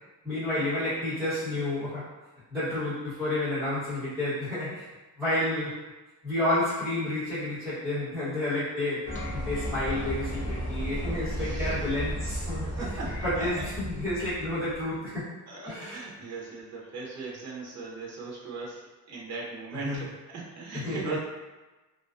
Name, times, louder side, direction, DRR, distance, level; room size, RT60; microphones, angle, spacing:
voice 1, 0.2-2.1 2.5-4.9 5.2-5.7 6.2-12.7 13.2-15.3 15.7-16.0 19.7-20.0 20.7-21.2, left 1 dB, ahead, -19 dB, 1.1 m, -30 dB
sound 1, 9.0-14.9, equal, 40° left, 0.4 m, -34 dB
voice 2, 11.3-11.9 12.6-13.6 15.5-18.8 19.1-21.2, right 3 dB, 50° right, -4 dB, 0.7 m, -38 dB
2.4 x 2.3 x 2.4 m, 1.1 s
cardioid pair, 175°, 34 cm